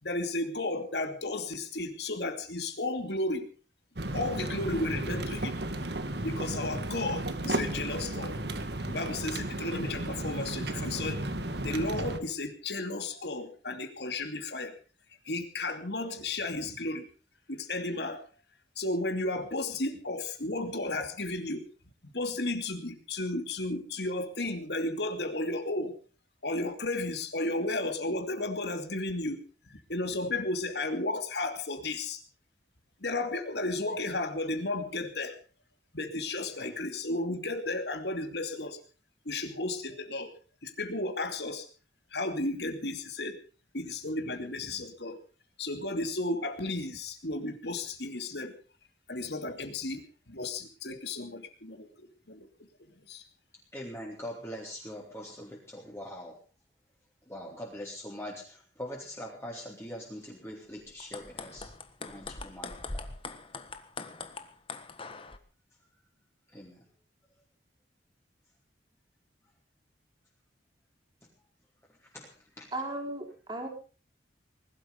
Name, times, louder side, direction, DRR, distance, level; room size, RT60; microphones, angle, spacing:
voice 1, 0.0-3.5 4.1-5.5 6.2-8.4 8.9-11.2 11.6-14.7 15.2-17.1 17.5-18.2 18.8-21.6 22.1-26.0 26.4-29.4 29.7-32.2 33.0-35.4 35.9-38.8 39.2-40.3 40.6-41.7 42.1-43.4 43.7-45.2 45.6-48.6 49.1-52.7 53.0-53.2, left 2 dB, 65° left, 7 dB, 2.7 m, -33 dB
sound 1, 4.0-12.2, right 1 dB, 65° right, 1.7 m, -34 dB
voice 2, 53.7-56.4 57.3-61.7 62.1-63.1 66.5-66.8 72.0-72.3 72.6-72.7, equal, 15° left, -3 dB, 3.7 m, -42 dB
sound 2, 60.9-65.4, left 3 dB, 30° left, 1.4 m, -42 dB
voice 3, 72.7-73.7, right 2 dB, 25° right, 3 dB, 4.2 m, -36 dB
20.0 x 12.5 x 5.3 m, 0.37 s
head